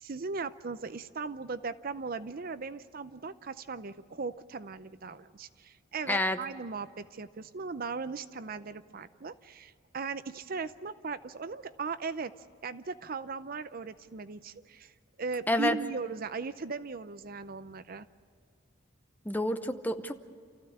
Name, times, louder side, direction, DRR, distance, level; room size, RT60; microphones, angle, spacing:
voice 1, 0.0-12.3 12.6-14.9 15.2-18.1, right 4 dB, 50° right, 13 dB, 0.6 m, -38 dB
voice 2, 6.1-6.4 15.5-15.8 19.2-20.1, left 1 dB, 10° left, 8 dB, 0.8 m, -28 dB
28.5 x 15.0 x 8.6 m, 2.3 s
head